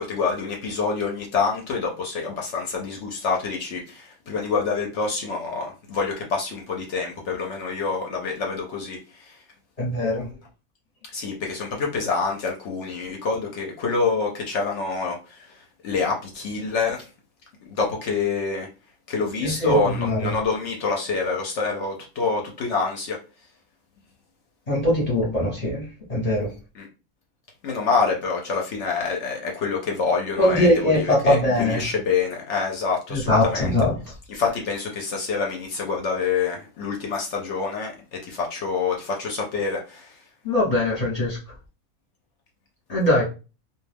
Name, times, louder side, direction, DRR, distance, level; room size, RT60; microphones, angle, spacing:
voice 1, 0.0-9.4 11.1-17.1 17.6-18.7 19.1-23.2 26.7-26.9 27.6-33.7 34.3-40.2, left 4 dB, 65° left, 0.8 m, -27 dB
voice 2, 9.8-10.3 19.4-20.3 24.7-26.5 30.4-31.8 33.1-33.9 40.4-41.4 42.9-43.2, left 1 dB, 35° left, 0.8 m, -21 dB
2.4 x 2.2 x 3.2 m
omnidirectional pair, 1.5 m